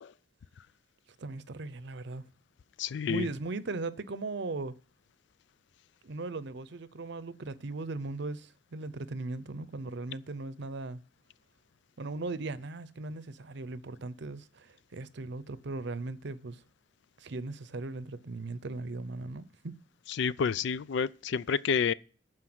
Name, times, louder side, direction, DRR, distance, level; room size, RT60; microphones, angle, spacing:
voice 1, 1.2-2.2 3.1-4.8 6.0-11.0 12.0-16.6 17.2-19.7, right 3 dB, 65° right, 0.7 m, -38 dB
voice 2, 2.8-3.3 20.2-21.9, left 6 dB, 65° left, 0.4 m, -29 dB
12.0 x 4.6 x 7.8 m
head